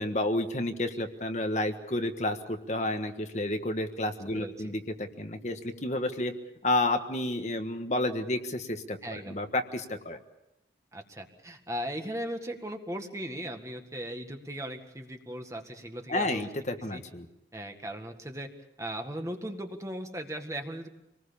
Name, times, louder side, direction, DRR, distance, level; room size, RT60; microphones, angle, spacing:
voice 1, 0.0-6.3 6.6-10.2 16.1-17.3, left 1 dB, 40° left, 6 dB, 1.4 m, -31 dB
voice 2, 4.3-4.7 9.0-9.4 10.9-16.5 16.9-17.0 17.5-18.5 18.8-21.0, equal, 15° right, 5 dB, 1.8 m, -38 dB
26.5 x 19.5 x 7.1 m, 0.87 s
head